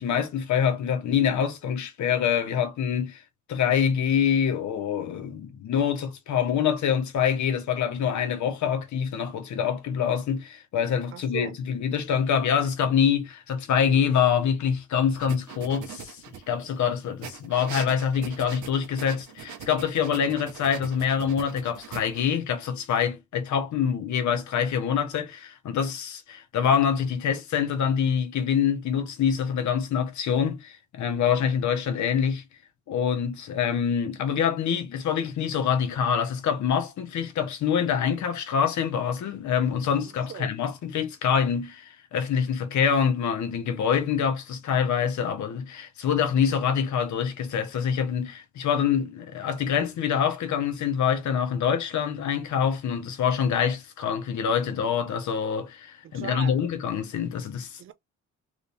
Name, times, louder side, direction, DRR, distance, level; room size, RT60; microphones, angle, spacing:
voice 1, 0.0-3.2 3.5-32.4 32.9-57.8, left 7 dB, 70° left, 1.2 m, -25 dB
voice 2, 11.1-11.6 40.3-40.5 56.1-56.6 57.8-57.9, right 9 dB, 45° right, 0.6 m, -37 dB
sound 1, 15.1-16.7 17.2-22.2, right 8 dB, 75° right, 1.0 m, -41 dB
3.3 x 2.8 x 3.4 m
cardioid pair, 90°, 30 cm